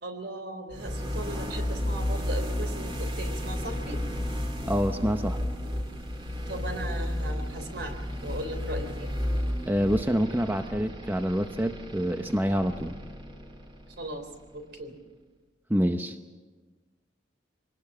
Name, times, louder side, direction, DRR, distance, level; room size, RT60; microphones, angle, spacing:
voice 1, 0.0-4.0 6.5-9.1 14.0-15.0, right 1 dB, 60° right, 7 dB, 3.6 m, -38 dB
sound 1, 0.7-14.6, left 1 dB, 30° right, 2.3 m, -33 dB
voice 2, 4.6-5.4 9.6-13.0 15.7-16.2, equal, 10° right, 7 dB, 0.7 m, -26 dB
24.5 x 19.0 x 7.2 m, 1.3 s
head